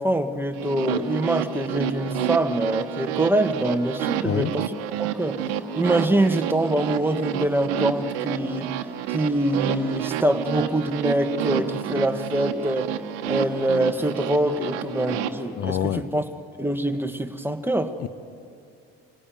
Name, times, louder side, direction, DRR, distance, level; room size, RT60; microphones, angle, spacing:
voice 1, 0.0-5.4 5.7-8.7 9.1-12.9 13.2-16.2 16.6-17.9, right 1 dB, 5° right, 6 dB, 1.5 m, -24 dB
sound 1, 0.5-15.3, right 10 dB, 85° right, 1.2 m, -29 dB
voice 2, 15.6-16.0 18.0-18.1, left 9 dB, 55° left, 12 dB, 0.9 m, -26 dB
27.0 x 17.0 x 9.2 m, 2.6 s
supercardioid pair, 80°, 29 cm